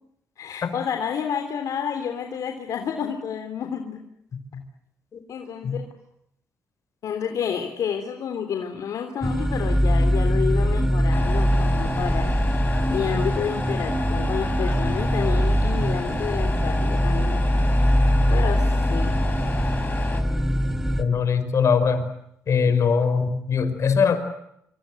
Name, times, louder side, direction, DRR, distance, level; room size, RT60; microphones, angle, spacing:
voice 1, 0.4-4.0 5.3-5.9 7.0-12.4 12.9-17.4 18.3-19.2, left 7 dB, 70° left, 5 dB, 3.4 m, -30 dB
sound 1, 9.2-21.0, equal, 5° right, 3.1 m, -22 dB
Truck, 11.1-20.2, left 3 dB, 30° left, 4.7 m, -33 dB
voice 2, 21.0-22.1 22.5-24.2, left 6 dB, 55° left, 11 dB, 5.5 m, -21 dB
27.5 x 25.5 x 7.8 m, 0.78 s
cardioid pair, 100°, 6 cm